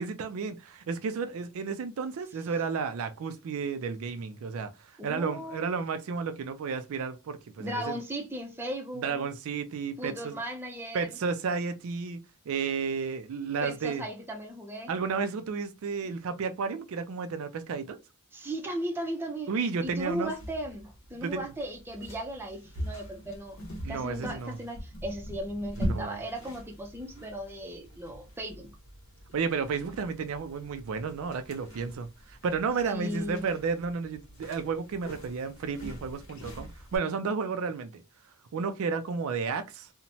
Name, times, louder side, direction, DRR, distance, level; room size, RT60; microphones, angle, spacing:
voice 1, 0.0-8.0 8.9-10.4 10.9-12.2 12.5-14.0 14.9-18.0 19.5-20.3 21.2-21.5 23.8-24.6 25.8-26.2 29.3-38.0 38.5-39.9, right 5 dB, 70° right, 0.4 m, -32 dB
voice 2, 5.0-5.7 7.6-9.3 10.0-11.1 13.6-14.9 18.3-19.5 19.8-23.6 23.9-28.7 32.8-33.5, right 1 dB, 10° right, 0.5 m, -36 dB
sound 1, 19.8-37.0, equal, 60° left, 1.1 m, -42 dB
2.9 x 2.1 x 2.6 m
head